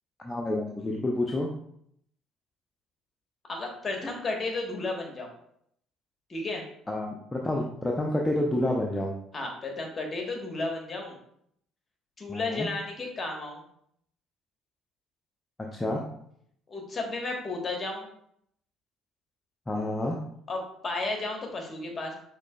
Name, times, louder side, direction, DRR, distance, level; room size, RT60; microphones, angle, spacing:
voice 1, 0.2-1.5 6.9-9.1 12.3-12.7 15.7-16.0 19.7-20.2, left 1 dB, 20° left, -1 dB, 0.6 m, -29 dB
voice 2, 3.5-5.3 6.3-6.6 9.3-11.2 12.2-13.6 16.7-18.1 20.5-22.1, left 2 dB, 35° left, 2 dB, 1.2 m, -33 dB
6.0 x 3.0 x 2.3 m, 0.70 s
hypercardioid pair, 55°, 0 cm